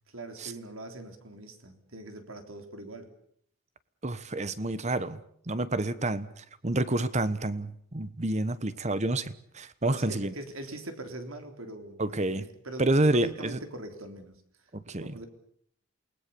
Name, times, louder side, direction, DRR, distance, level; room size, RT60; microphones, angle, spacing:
voice 1, 0.1-3.1 9.8-14.4 14.9-15.3, right 1 dB, 75° right, 6 dB, 3.6 m, -42 dB
voice 2, 4.0-5.2 5.5-10.3 12.0-12.5 12.8-13.6 14.7-15.1, right 2 dB, 35° right, 15 dB, 1.1 m, -29 dB
28.5 x 19.5 x 6.9 m, 0.65 s
head